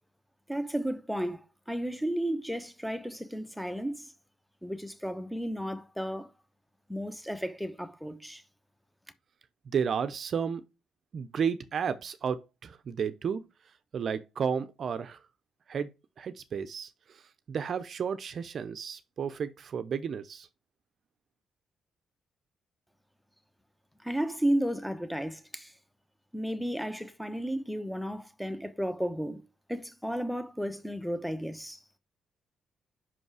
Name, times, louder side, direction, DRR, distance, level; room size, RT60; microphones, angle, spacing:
voice 1, 0.5-4.1 4.6-6.3 6.9-8.4 24.0-25.7 26.3-29.4 29.7-31.8, equal, ahead, 0.9 m, -33 dB
voice 2, 9.7-10.6 11.1-13.4 13.9-15.2 15.7-15.9 16.2-17.2 17.5-20.5, right 7 dB, 55° right, 0.6 m, -32 dB
5.6 x 5.3 x 4.8 m
cardioid pair, 90°, 0 cm